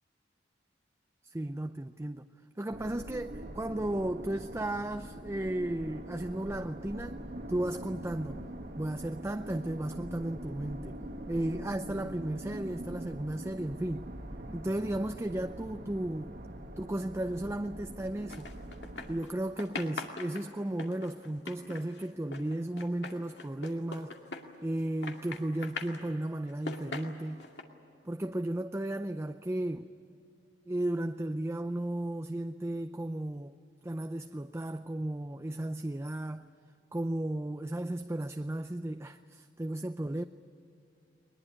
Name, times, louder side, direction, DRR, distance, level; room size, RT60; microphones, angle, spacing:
voice 1, 1.2-2.3 2.6-7.2 7.5-8.4 8.8-11.0 11.3-14.1 14.5-16.4 16.8-18.5 19.1-24.1 24.6-27.5 28.0-29.9 30.7-33.5 33.8-36.5 36.9-40.2, right 1 dB, 15° right, 0.5 m, -34 dB
sound 1, 2.7-19.2, right 1 dB, 55° right, 1.6 m, -43 dB
sound 2, 18.3-19.3 19.6-24.8 25.0-26.0 26.5-27.6, left 3 dB, 70° left, 2.3 m, -41 dB
22.0 x 20.5 x 9.9 m
head